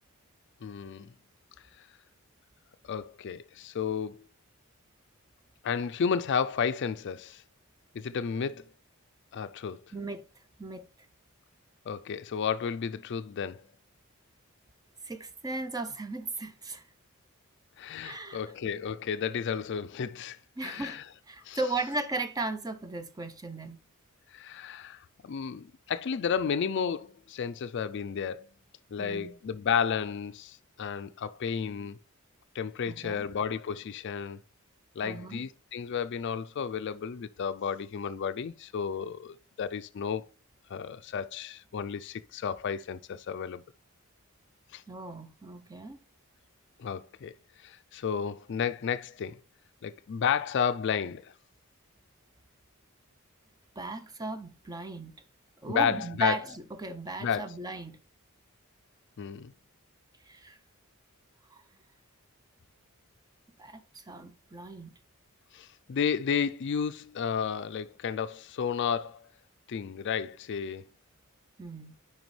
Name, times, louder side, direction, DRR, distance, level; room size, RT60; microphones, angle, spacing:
voice 1, 0.6-1.1 2.9-4.2 5.6-7.4 7.9-8.6 9.3-9.8 11.9-13.6 17.8-21.0 21.4-21.6 24.3-28.5 28.9-32.0 32.5-34.4 35.0-40.2 40.7-43.6 44.7-44.8 46.8-47.3 47.6-49.4 49.8-51.3 55.7-56.4 57.2-57.6 59.2-59.5 65.5-69.3 69.7-70.9, left 7 dB, 55° left, 0.4 m, -32 dB
voice 2, 9.9-10.2 10.6-10.9 15.0-16.8 18.0-18.4 20.6-21.0 21.3-23.8 29.0-29.4 32.9-33.2 35.0-35.4 44.9-46.0 53.8-55.1 55.6-58.0 60.3-60.6 61.5-61.6 63.6-64.9 71.6-71.9, right 2 dB, 15° right, 0.5 m, -36 dB
9.2 x 5.1 x 3.2 m
head